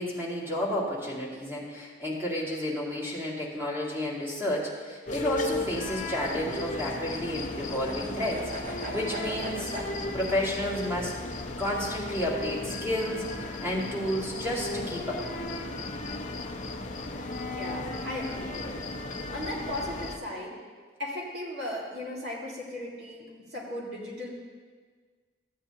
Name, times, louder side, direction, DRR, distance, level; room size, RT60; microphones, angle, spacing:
voice 1, 0.0-15.2, equal, 15° right, -5 dB, 2.0 m, -31 dB
sound 1, 5.1-20.2, left 2 dB, 40° left, 0.6 m, -35 dB
sound 2, 5.4-9.9, right 1 dB, 45° right, 1.1 m, -41 dB
voice 2, 17.4-18.8 19.3-20.6 21.0-24.3, left 1 dB, 60° right, -4 dB, 1.9 m, -37 dB
14.0 x 8.7 x 2.8 m, 1.6 s
head